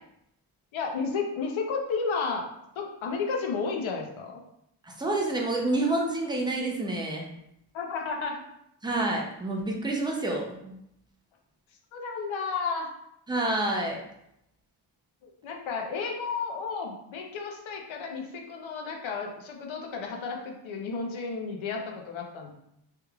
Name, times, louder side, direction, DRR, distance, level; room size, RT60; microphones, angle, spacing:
voice 1, 0.7-2.5 2.8-4.4 7.7-8.4 11.9-12.9 15.4-22.5, left 5 dB, 70° left, 1 dB, 0.8 m, -32 dB
voice 2, 4.8-7.3 8.8-10.7 13.3-14.0, right 2 dB, 10° right, -1 dB, 0.5 m, -28 dB
3.4 x 3.1 x 2.3 m, 0.78 s
wide cardioid pair, 135°, 49 cm